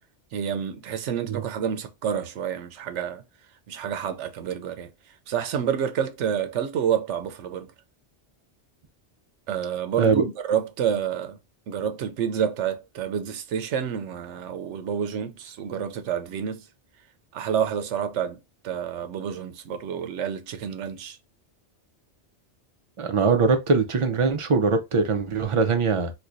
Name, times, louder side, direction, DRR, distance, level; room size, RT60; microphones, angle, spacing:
voice 1, 0.3-3.2 3.7-4.9 5.3-7.7 9.5-11.4 11.7-16.7 17.3-21.2, right 8 dB, 90° right, 0.9 m, -29 dB
voice 2, 23.0-26.1, right 4 dB, 40° right, 0.4 m, -22 dB
4.4 x 2.2 x 2.5 m
omnidirectional pair, 1.2 m